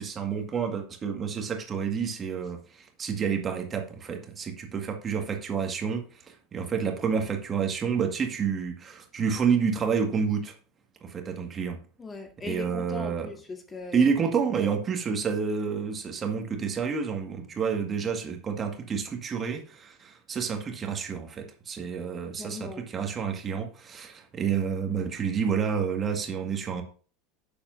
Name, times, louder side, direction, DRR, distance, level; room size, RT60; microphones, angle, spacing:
voice 1, 0.0-10.6 11.0-11.8 12.4-13.3 13.9-26.8, right 6 dB, 30° right, 1.9 m, -29 dB
voice 2, 12.0-14.1 14.5-14.7 22.4-22.9, left 3 dB, 20° left, 2.0 m, -39 dB
10.5 x 7.1 x 2.7 m
figure-of-eight pair, 75°, 0 cm